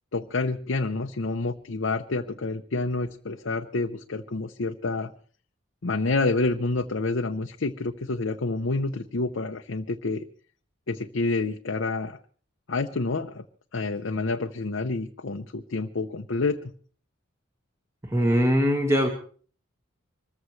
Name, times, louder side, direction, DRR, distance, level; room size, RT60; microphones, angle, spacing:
voice 1, 0.1-5.1 5.8-10.2 10.9-12.2 12.7-13.4 13.7-16.7, left 3 dB, 65° left, 4 dB, 0.7 m, -28 dB
voice 2, 18.0-19.1, equal, 15° right, 1 dB, 1.6 m, -21 dB
25.5 x 14.5 x 3.2 m, 0.43 s
head